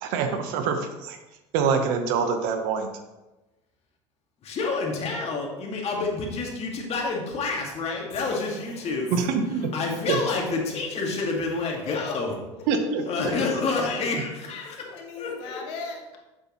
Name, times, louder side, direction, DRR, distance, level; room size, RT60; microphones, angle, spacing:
voice 1, 0.0-1.2 1.5-2.9 9.1-9.7 10.1-10.2 12.7-13.0, right 5 dB, 70° right, 6 dB, 1.1 m, -25 dB
voice 2, 4.4-9.3 9.7-12.4 13.1-14.9 15.2-15.6, left 3 dB, 45° left, 0 dB, 2.2 m, -28 dB
voice 3, 8.1-9.0 10.9-12.4 13.1-13.3 13.7-14.1 14.6-16.2, left 4 dB, 80° left, 1 dB, 1.6 m, -41 dB
7.6 x 6.7 x 3.1 m, 1.0 s
supercardioid pair, 85°, 14 cm